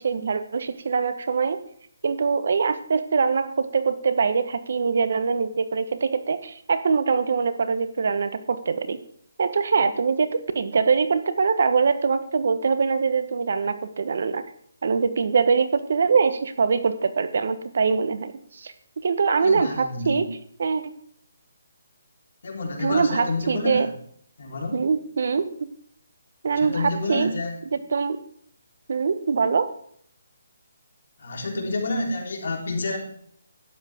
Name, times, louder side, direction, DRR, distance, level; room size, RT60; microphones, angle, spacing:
voice 1, 0.0-1.6 2.0-9.0 9.4-14.4 14.8-18.7 19.0-20.3 20.6-20.9 22.8-23.9 24.7-25.5 26.4-27.3 27.7-28.2 28.9-29.7, right 5 dB, 60° right, 11 dB, 1.1 m, -23 dB
voice 2, 19.4-20.2 22.4-23.8 24.4-24.8 26.5-27.5 31.2-33.0, left 2 dB, 60° left, 1 dB, 3.6 m, -29 dB
12.0 x 10.0 x 3.6 m, 0.63 s
figure-of-eight pair, 150°, 0 cm